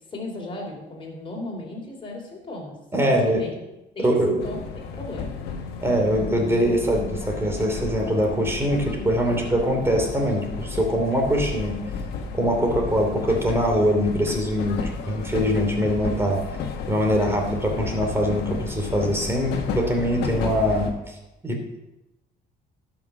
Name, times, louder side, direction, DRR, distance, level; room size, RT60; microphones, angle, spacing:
voice 1, 0.1-2.8 3.1-3.5 3.9-4.6 4.9-5.5, left 2 dB, 30° left, -1 dB, 3.6 m, -35 dB
voice 2, 2.9-3.4 4.0-4.4 5.8-11.9 12.4-16.5 16.9-21.2 21.4-21.8, equal, 15° right, 2 dB, 2.7 m, -23 dB
sound 1, 4.4-20.9, left 5 dB, 80° left, 1.5 m, -32 dB
11.5 x 6.0 x 6.1 m, 0.97 s
cardioid pair, 110°, 17 cm